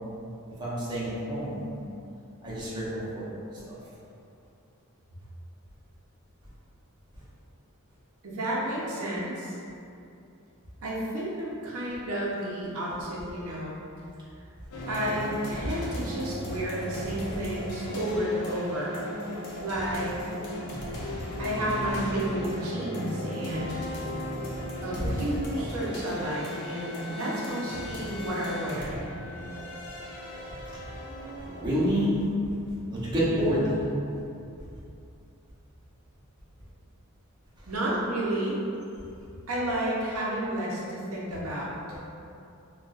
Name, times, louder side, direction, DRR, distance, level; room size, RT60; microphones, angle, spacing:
voice 1, 0.6-1.7 2.4-3.4 3.7-3.8 31.5-32.2 32.9-33.8 41.3-41.5, equal, 20° right, -10 dB, 0.8 m, -28 dB
voice 2, 8.2-9.6 10.8-13.8 14.9-19.0 19.6-20.2 21.1-23.8 24.8-28.9 37.7-38.6 39.5-41.7, right 1 dB, 70° right, -5 dB, 0.7 m, -31 dB
sound 1, 14.7-31.7, equal, 90° left, 0.6 m, -36 dB
3.8 x 2.3 x 2.4 m, 2.6 s
head